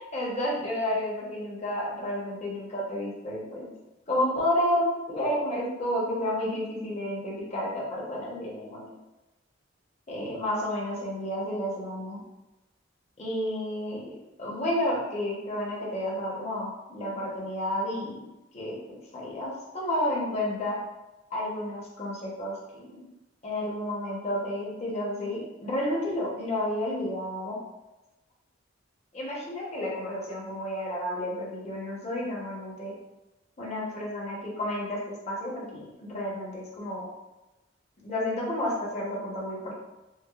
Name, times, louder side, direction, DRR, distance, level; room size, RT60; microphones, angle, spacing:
voice 1, 0.1-3.7 4.1-8.9 10.1-12.2 13.2-14.1 14.4-18.3 18.5-20.8 21.3-22.6 22.9-23.0 23.4-27.6 29.1-32.9 33.6-37.1 38.0-39.7, left 1 dB, 35° left, -4 dB, 0.8 m, -31 dB
4.6 x 2.1 x 2.3 m, 1.0 s
head